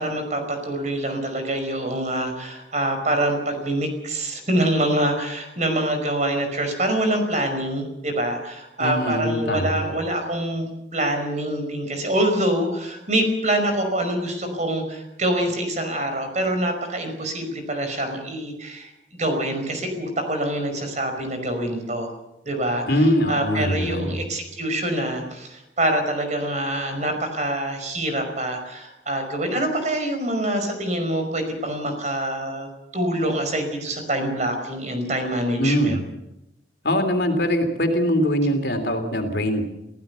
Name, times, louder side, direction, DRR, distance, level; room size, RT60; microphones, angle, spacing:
voice 1, 0.0-22.1 22.5-22.8 23.3-36.0, right 1 dB, 40° right, 6 dB, 5.3 m, -25 dB
voice 2, 8.8-9.9 22.9-24.2 35.6-36.0 36.8-39.7, equal, 65° left, 5 dB, 3.4 m, -22 dB
24.0 x 16.0 x 7.0 m, 0.91 s
head